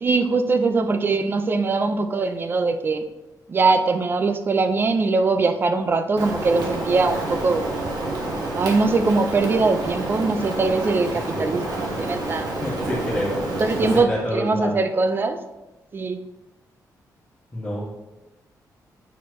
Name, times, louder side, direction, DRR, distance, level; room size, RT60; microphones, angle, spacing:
voice 1, 0.0-3.0 3.5-7.6 8.6-12.6 13.6-15.4 15.9-16.2, right 3 dB, 30° right, 8 dB, 0.5 m, -22 dB
Rain, 6.2-14.0, right 2 dB, 70° right, 1.5 m, -28 dB
voice 2, 12.6-14.7 17.5-17.8, left 1 dB, 10° left, -9 dB, 1.8 m, -28 dB
9.1 x 4.5 x 3.1 m, 1.0 s
wide cardioid pair, 140°, 7 cm